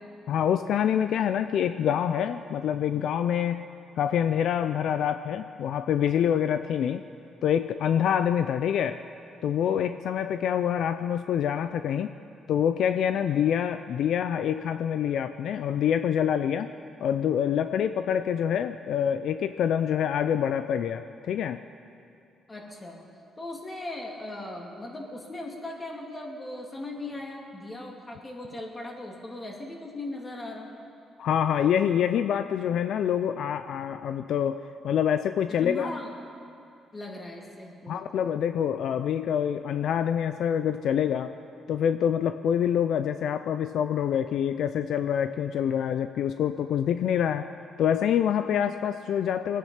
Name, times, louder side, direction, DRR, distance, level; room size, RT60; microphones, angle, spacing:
voice 1, 0.3-3.7 4.0-7.0 7.4-9.0 9.4-12.2 12.5-16.7 17.0-21.6 31.2-35.9 37.9-41.3 41.7-47.5 47.8-49.6, left 9 dB, 75° left, 10 dB, 0.4 m, -26 dB
voice 2, 22.5-23.0 23.4-30.7 35.6-36.1 36.9-38.0, left 2 dB, 25° left, 0 dB, 2.7 m, -38 dB
22.5 x 9.4 x 5.8 m, 2.5 s
cardioid pair, 90°, 0 cm